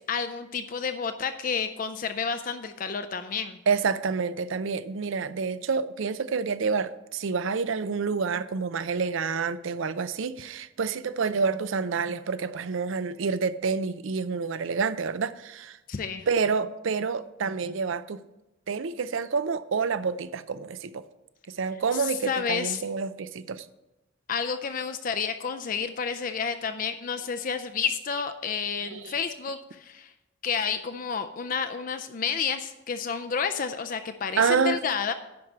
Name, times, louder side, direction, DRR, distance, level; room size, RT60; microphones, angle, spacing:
voice 1, 0.1-3.6 15.9-16.3 21.9-22.8 24.3-30.1 30.4-35.1, left 6 dB, 40° left, 0.4 m, -30 dB
voice 2, 3.7-15.8 16.3-18.2 18.7-21.0 21.5-23.7 28.8-29.1 34.4-34.8, right 5 dB, 70° right, 0.5 m, -28 dB
10.5 x 4.7 x 7.4 m
head